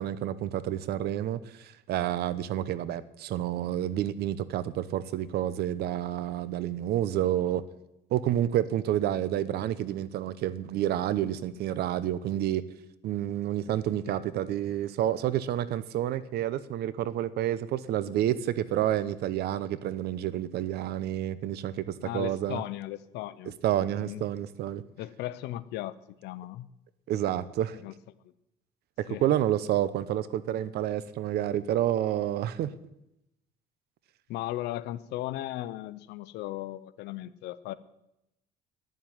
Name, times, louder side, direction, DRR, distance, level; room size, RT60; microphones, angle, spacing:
voice 1, 0.0-7.6 8.1-12.6 13.0-22.6 23.6-24.8 27.1-27.8 29.0-32.7, right 12 dB, 70° right, 16 dB, 0.8 m, -29 dB
voice 2, 22.0-23.5 24.0-24.2 25.0-26.7 27.8-28.0 29.1-29.3 34.3-37.7, left 15 dB, 85° left, 16 dB, 0.8 m, -37 dB
10.5 x 7.5 x 9.4 m, 0.86 s
cardioid pair, 110°, 17 cm